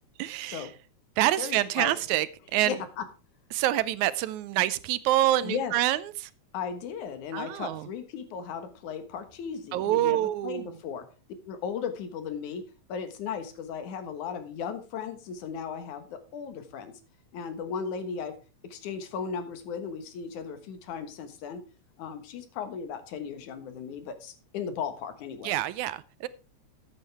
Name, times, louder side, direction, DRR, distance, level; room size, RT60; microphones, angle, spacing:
voice 1, 0.2-0.7 1.2-2.3 2.5-2.8 3.5-6.3 7.3-7.9 9.7-10.8 25.4-26.3, right 14 dB, 80° right, 16 dB, 2.0 m, -26 dB
voice 2, 1.4-1.9 2.7-3.0 5.4-5.7 6.5-11.1 11.5-16.9 17.3-18.4 18.6-21.6 22.0-25.6, left 6 dB, 80° left, 9 dB, 2.8 m, -36 dB
14.0 x 9.1 x 3.4 m, 0.32 s
omnidirectional pair, 3.4 m